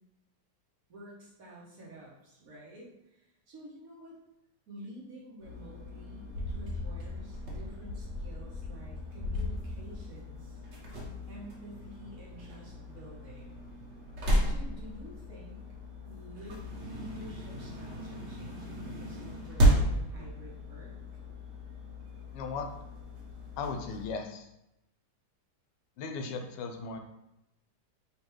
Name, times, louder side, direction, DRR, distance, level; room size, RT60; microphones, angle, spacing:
voice 1, 0.9-4.2 4.7-10.6 11.3-13.6 14.4-15.6 16.0-21.0, equal, 55° right, -4 dB, 1.4 m, -49 dB
sound 1, 5.4-24.1, equal, 80° right, 1.8 m, -34 dB
voice 2, 22.3-22.7 23.6-24.5 26.0-27.0, left 4 dB, 85° left, 5 dB, 1.3 m, -37 dB
4.0 x 3.3 x 3.1 m, 0.87 s
omnidirectional pair, 1.9 m